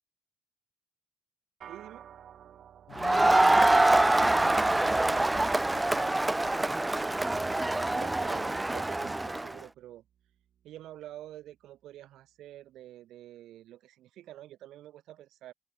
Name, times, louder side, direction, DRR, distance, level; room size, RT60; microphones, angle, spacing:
sound 1, 1.6-11.1, right 9 dB, 65° right, 6.3 m, -56 dB
voice 1, 1.7-2.1 7.9-10.0 10.6-15.5, right 13 dB, 85° right, 4.1 m, -47 dB
voice 2, 2.9-6.2, left 13 dB, 85° left, 4.6 m, -48 dB
Crowd, 3.0-9.5, right 2 dB, 15° right, 1.1 m, -25 dB
open air
cardioid pair, 90°, 0 cm